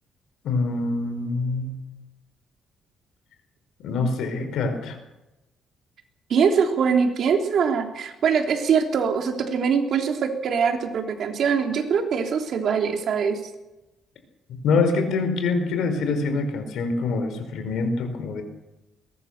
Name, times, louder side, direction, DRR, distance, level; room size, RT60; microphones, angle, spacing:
voice 1, 0.4-1.8 3.8-5.0 14.6-18.4, left 3 dB, 70° left, 7 dB, 4.6 m, -25 dB
voice 2, 6.3-13.4, right 6 dB, 55° right, 4 dB, 3.4 m, -23 dB
22.0 x 19.5 x 6.8 m, 0.99 s
cardioid pair, 140°, 0 cm